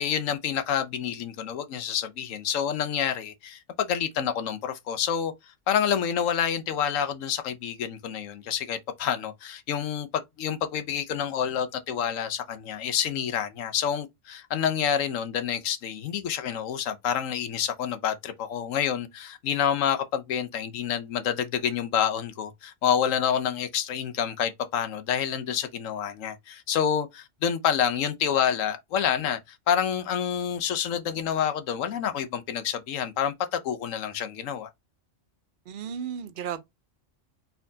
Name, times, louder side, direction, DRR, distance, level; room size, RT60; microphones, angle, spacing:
voice 1, 0.0-34.7, left 8 dB, 85° left, 1.1 m, -28 dB
voice 2, 35.7-36.6, right 8 dB, 55° right, 0.6 m, -34 dB
4.3 x 4.1 x 2.7 m
omnidirectional pair, 1.3 m